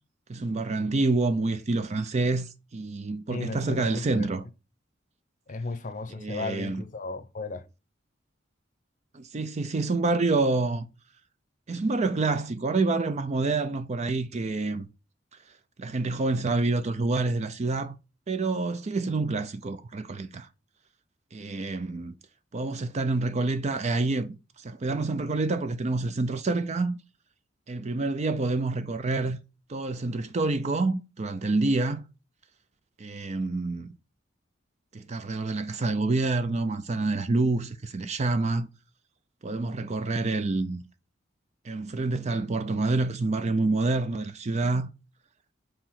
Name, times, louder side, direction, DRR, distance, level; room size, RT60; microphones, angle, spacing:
voice 1, 0.3-4.5 6.2-6.8 9.1-10.9 11.7-14.9 15.8-18.0 18.3-20.5 21.3-22.1 22.5-27.0 27.7-29.4 29.7-32.0 33.0-33.9 34.9-38.7 39.4-40.8 41.6-44.9, right 3 dB, 35° right, 0.5 m, -27 dB
voice 2, 3.3-4.3 5.5-7.6, left 3 dB, 45° left, 0.7 m, -34 dB
4.8 x 3.8 x 5.7 m
head